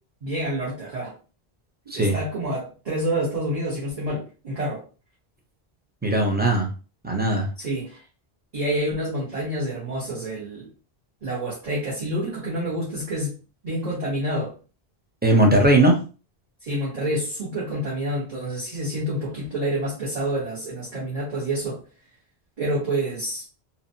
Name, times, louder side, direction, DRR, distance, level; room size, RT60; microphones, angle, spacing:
voice 1, 0.2-1.1 1.9-4.8 7.6-8.0 8.5-10.7 11.2-13.3 13.6-14.6 16.6-21.8 22.6-23.4, right 1 dB, 40° right, -7 dB, 1.0 m, -28 dB
voice 2, 6.0-6.7 7.0-7.5 15.2-16.0, right 1 dB, 15° right, 1 dB, 0.5 m, -18 dB
2.9 x 2.2 x 2.6 m, 0.34 s
omnidirectional pair, 1.1 m